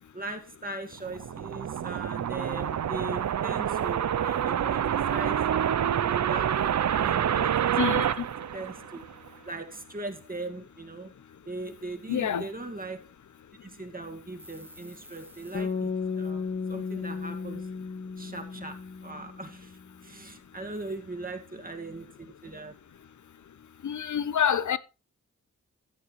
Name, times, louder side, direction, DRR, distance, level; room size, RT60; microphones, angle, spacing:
voice 1, 0.1-4.8 5.1-8.0 8.5-9.0 9.5-11.1 11.5-13.0 13.6-15.9 16.1-17.7 18.2-22.7, right 2 dB, 30° right, 2.0 m, -40 dB
sound 1, 0.9-9.3, right 9 dB, 65° right, 0.5 m, -27 dB
voice 2, 7.8-8.2 12.1-12.5 23.8-24.8, left 8 dB, 75° left, 0.7 m, -27 dB
sound 2, 14.4-15.6, right 1 dB, 5° right, 1.5 m, -51 dB
sound 3, 15.5-19.8, left 5 dB, 30° left, 1.1 m, -34 dB
14.0 x 7.5 x 3.1 m
wide cardioid pair, 65°, 30 cm